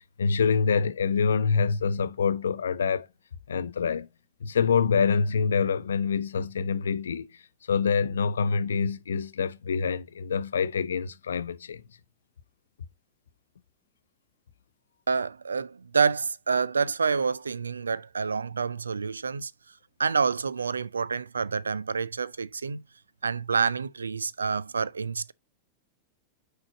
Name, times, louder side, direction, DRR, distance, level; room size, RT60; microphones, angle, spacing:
voice 1, 0.2-3.1 3.5-4.1 4.4-7.3 7.7-11.8, left 5 dB, 70° left, 0.6 m, -26 dB
voice 2, 15.1-19.5 20.0-22.8 23.2-25.3, right 5 dB, 75° right, 0.4 m, -28 dB
6.1 x 4.7 x 4.0 m
figure-of-eight pair, 90°, 0 cm